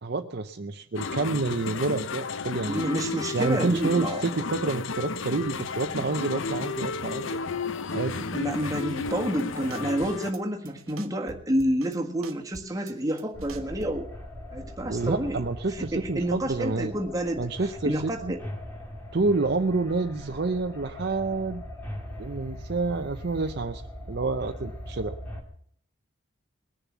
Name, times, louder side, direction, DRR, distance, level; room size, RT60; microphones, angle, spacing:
voice 1, 0.0-2.8 3.3-7.4 7.9-8.2 14.8-16.9 17.4-18.3 19.1-21.6 22.2-23.8 24.1-25.1, right 3 dB, 50° right, 7 dB, 0.6 m, -28 dB
sound 1, 0.9-10.3, left 4 dB, 70° left, 0.6 m, -33 dB
voice 2, 2.6-4.2 8.3-14.1 14.5-15.4 15.7-17.5 17.8-18.4, right 1 dB, 15° right, 1 dB, 1.5 m, -29 dB
sound 2, 9.1-9.4 9.7-10.4 10.7-12.0 12.2-14.1, right 3 dB, 85° right, 1.2 m, -45 dB
sound 3, 13.3-25.4, equal, 10° left, 2.4 m, -40 dB
20.5 x 6.9 x 7.3 m, 0.62 s
head